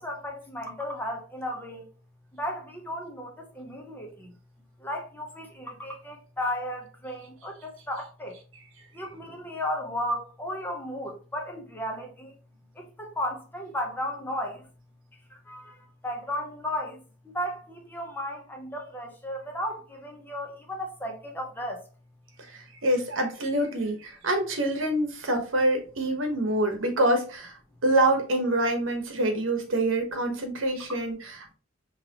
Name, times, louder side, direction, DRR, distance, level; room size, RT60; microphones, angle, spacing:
voice 1, 0.0-1.9 2.3-4.3 4.8-8.4 8.9-12.3 12.8-14.6 15.5-15.8 16.0-17.0 17.2-21.8, left 1 dB, 10° left, 0.8 m, -34 dB
voice 2, 22.5-27.6 27.8-31.5, right 1 dB, 85° right, 1.2 m, -26 dB
5.8 x 3.0 x 2.9 m
head